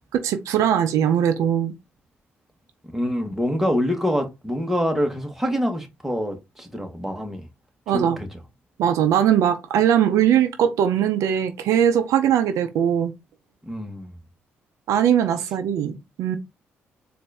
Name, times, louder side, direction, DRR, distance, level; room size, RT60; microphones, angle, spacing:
voice 1, 0.1-1.7 7.9-8.2 8.8-13.1 14.9-16.4, right 9 dB, 80° right, 0.5 m, -20 dB
voice 2, 2.9-7.4 7.9-8.3 13.7-14.1, equal, 5° right, 1.4 m, -25 dB
4.1 x 2.6 x 3.4 m
supercardioid pair, 60°, 5 cm